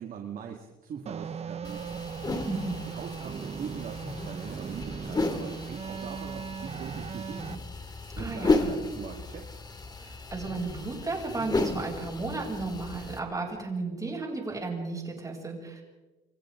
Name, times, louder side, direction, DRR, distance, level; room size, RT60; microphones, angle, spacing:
voice 1, 0.0-2.1 2.9-7.6 8.2-9.4, right 7 dB, 55° right, 2 dB, 2.2 m, -41 dB
sound 1, 1.1-7.6, right 6 dB, 40° right, 1.0 m, -38 dB
sound 2, 1.6-13.2, left 3 dB, 25° left, 2.8 m, -34 dB
voice 2, 2.5-2.8 8.2-8.7 10.0-15.8, right 3 dB, 20° right, 0 dB, 7.5 m, -34 dB
30.0 x 26.0 x 3.9 m, 1.2 s
cardioid pair, 110°, 17 cm